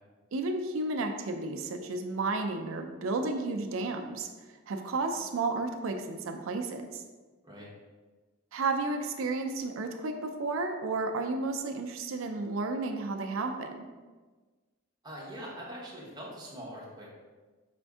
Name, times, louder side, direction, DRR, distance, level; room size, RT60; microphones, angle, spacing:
voice 1, 0.3-4.3 4.7-7.0 8.5-13.8, right 3 dB, 65° right, 5 dB, 0.4 m, -32 dB
voice 2, 15.0-17.1, equal, 20° right, -5 dB, 1.0 m, -43 dB
5.1 x 2.6 x 3.5 m, 1.3 s
head